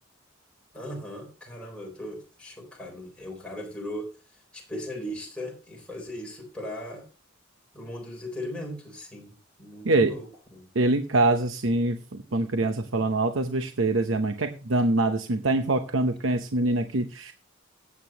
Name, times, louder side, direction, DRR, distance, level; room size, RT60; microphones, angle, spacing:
voice 1, 0.7-4.2 4.5-7.1 7.7-9.3 9.6-10.7, equal, 5° left, 3.7 m, -38 dB
voice 2, 10.7-17.3, right 2 dB, 80° right, 0.9 m, -24 dB
16.5 x 8.3 x 2.9 m
head